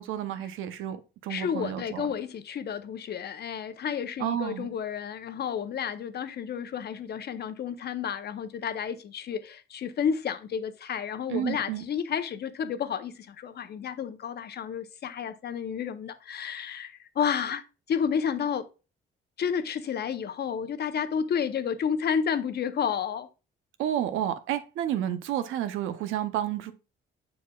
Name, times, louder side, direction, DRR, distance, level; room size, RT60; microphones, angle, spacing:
voice 1, 0.0-2.1 4.2-4.7 11.3-11.8 23.8-26.7, right 11 dB, 90° right, 0.7 m, -31 dB
voice 2, 1.3-17.6 17.9-18.6 19.4-23.3, left 7 dB, 55° left, 0.7 m, -31 dB
7.0 x 6.4 x 2.3 m
cardioid pair, 90°, 20 cm